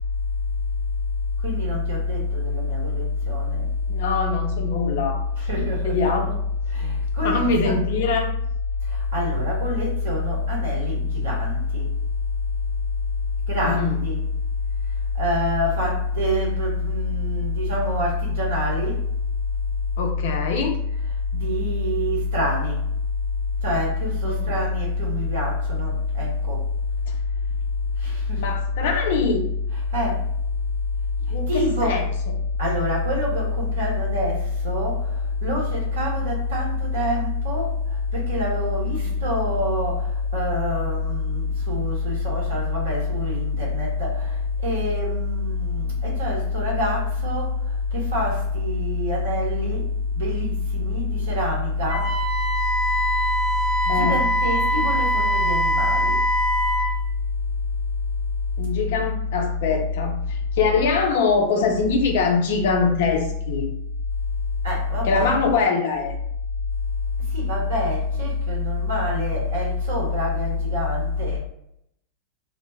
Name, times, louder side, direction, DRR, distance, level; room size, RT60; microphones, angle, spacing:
voice 1, 1.4-3.7 5.5-6.1 6.8-6.9 7.2-7.7 9.1-11.9 13.5-14.2 15.2-18.9 21.3-22.7 23.6-26.6 28.3-28.4 29.9-30.1 31.5-32.0 32.6-34.4 34.6-34.9 35.4-37.7 38.1-40.0 40.3-44.1 44.6-47.5 47.9-49.8 50.2-52.0 53.9-56.2 64.6-65.3 67.3-71.4, left 2 dB, 65° right, -3 dB, 1.0 m, -24 dB
voice 2, 3.9-5.2 5.6-6.4 7.2-8.3 13.7-14.1 20.0-20.8 24.2-24.5 28.4-29.5 31.3-32.3 38.9-39.2 53.9-54.2 58.6-63.7 65.0-66.2, left 4 dB, 55° left, 3 dB, 0.5 m, -23 dB
Wind instrument woodwind instrument, 51.9-56.9, equal, 45° right, 0.5 m, -23 dB
2.3 x 2.1 x 3.3 m, 0.78 s
figure-of-eight pair, 90°, 0 cm